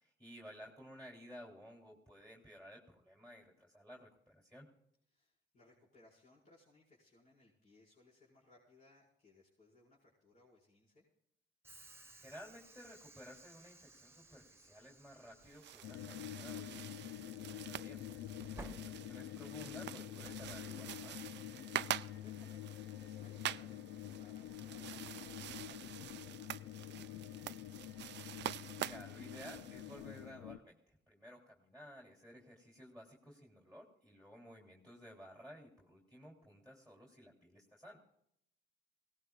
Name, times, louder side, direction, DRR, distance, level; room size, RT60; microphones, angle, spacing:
voice 1, 0.0-4.7 12.2-18.7 19.1-21.3 28.8-38.1, equal, 5° left, -1 dB, 3.2 m, -55 dB
voice 2, 5.1-11.1 18.5-18.7 21.8-27.9, left 2 dB, 40° left, -7 dB, 4.9 m, -67 dB
Train / Sliding door, 11.6-19.6, right 3 dB, 10° right, 1.1 m, -58 dB
sound 1, 15.4-30.2, right 12 dB, 60° right, 0.5 m, -46 dB
sound 2, 15.8-30.6, left 12 dB, 85° left, 0.5 m, -47 dB
21.5 x 18.0 x 2.4 m, 0.75 s
cardioid pair, 90°, 20 cm